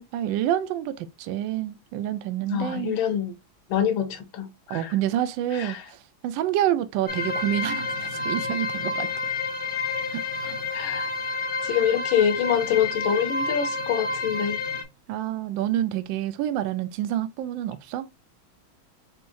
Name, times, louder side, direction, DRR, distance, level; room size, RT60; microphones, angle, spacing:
voice 1, 0.1-3.0 4.7-9.1 10.1-10.6 15.1-18.1, right 12 dB, 75° right, 1.2 m, -28 dB
voice 2, 2.5-3.3 3.7-4.9 5.5-5.8 10.7-11.1 11.6-14.6, left 8 dB, 75° left, 1.5 m, -25 dB
sound 1, 7.1-14.8, left 3 dB, 50° left, 0.6 m, -29 dB
4.4 x 3.5 x 2.6 m
omnidirectional pair, 2.2 m